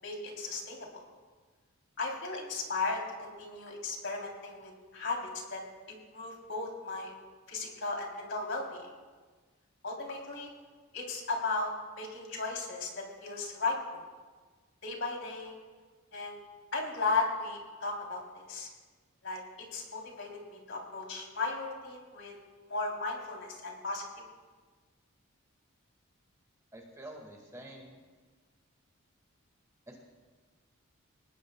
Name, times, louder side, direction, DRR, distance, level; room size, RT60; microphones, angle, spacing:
voice 1, 0.0-1.0 2.0-5.2 5.5-5.6 5.9-7.1 7.5-8.9 9.8-10.5 10.9-13.8 14.8-15.6 16.1-16.4 16.7-18.7 19.2-19.4 19.7-22.3 22.7-24.0, left 3 dB, 60° left, -1 dB, 3.6 m, -36 dB
voice 2, 26.7-28.0 29.9-30.0, right 1 dB, 15° right, 0 dB, 2.0 m, -47 dB
23.0 x 20.0 x 2.4 m, 1.4 s
head